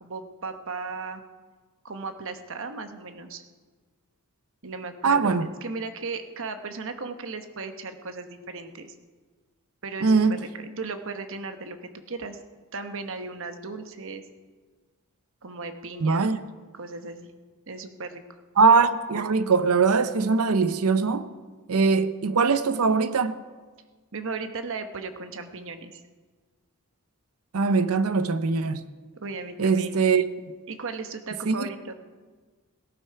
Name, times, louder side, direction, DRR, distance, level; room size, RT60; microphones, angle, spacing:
voice 1, 0.0-1.2 1.8-3.4 4.6-8.9 9.8-12.4 12.7-14.2 15.4-16.4 16.7-17.3 17.7-18.2 24.1-26.0 29.1-30.1 30.7-31.9, right 4 dB, 65° right, 1.1 m, -36 dB
voice 2, 5.0-5.5 10.0-10.4 16.0-16.4 18.6-21.3 21.7-23.4 27.5-28.8 29.6-30.2 31.5-31.7, right 4 dB, 90° right, 0.7 m, -21 dB
17.5 x 12.0 x 4.7 m
head